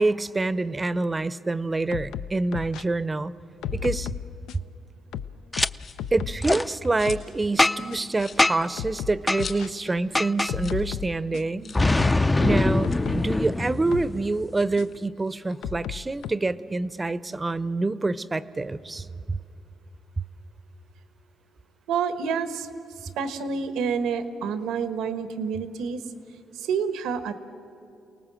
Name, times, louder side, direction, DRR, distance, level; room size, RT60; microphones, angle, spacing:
voice 1, 0.0-3.3 3.7-4.1 6.1-11.7 12.4-19.4, right 2 dB, 20° right, 16 dB, 0.6 m, -26 dB
sound 1, 1.9-2.8 3.6-4.7 5.1-6.5 6.8-7.3 7.9-8.0 8.8-9.7 10.5-11.6 12.0-13.3 13.9-14.1 14.8-14.9 15.6-16.3, left 10 dB, 85° left, 0.5 m, -34 dB
Boom, 5.5-5.7 6.4-6.6 7.6-8.0 8.4-8.7 9.3-9.4 10.1-10.5 11.7-14.4, left 2 dB, 15° left, 0.5 m, -23 dB
sound 2, 5.7-6.2 6.6-7.4 7.7-7.8 8.1-10.0 10.3-10.4 10.6-10.9 11.1-11.2 11.6-11.9 12.7-14.4 14.8-16.3, left 5 dB, 50° left, 2.2 m, -44 dB
voice 2, 21.9-22.7 23.0-26.0 26.5-27.3, right 6 dB, 90° right, 11 dB, 1.2 m, -28 dB
28.5 x 18.5 x 7.6 m, 2.7 s
cardioid pair, 90°, 0 cm